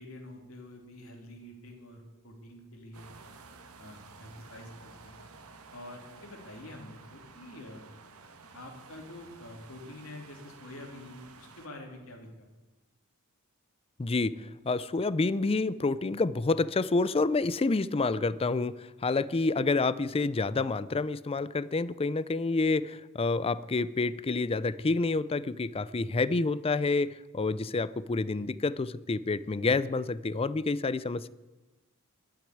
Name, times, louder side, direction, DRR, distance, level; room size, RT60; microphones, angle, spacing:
voice 1, 0.0-3.1 3.8-5.2 5.7-7.9 8.5-12.5, left 1 dB, 70° left, 2 dB, 3.2 m, -47 dB
sound 1, 2.9-11.7, right 4 dB, 90° right, 1.5 m, -52 dB
voice 2, 14.0-31.3, left 3 dB, 25° left, 17 dB, 0.5 m, -28 dB
12.0 x 9.3 x 10.0 m, 1.1 s
head